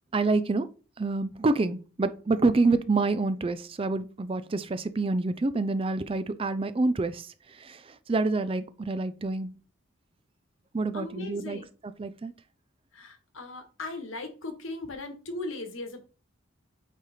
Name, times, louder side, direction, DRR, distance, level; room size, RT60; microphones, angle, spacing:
voice 1, 0.1-0.7 1.0-9.5 10.7-12.3, right 3 dB, 25° right, 0.4 m, -27 dB
voice 2, 10.9-11.7 12.9-16.0, left 2 dB, 75° left, 1.5 m, -38 dB
8.6 x 3.3 x 4.2 m
head